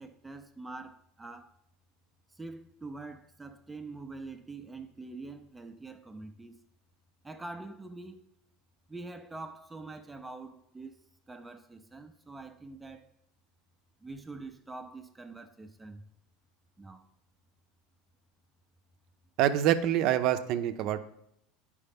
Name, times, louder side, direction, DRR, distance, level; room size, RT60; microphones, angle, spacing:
voice 1, 0.0-1.5 2.3-6.6 7.2-8.2 8.9-11.0 11.3-13.1 14.0-16.0 16.8-17.1, right 3 dB, 10° right, 0.5 m, -45 dB
voice 2, 19.4-21.0, right 11 dB, 55° right, 0.6 m, -26 dB
9.7 x 4.9 x 3.5 m
supercardioid pair, 100°, 0 cm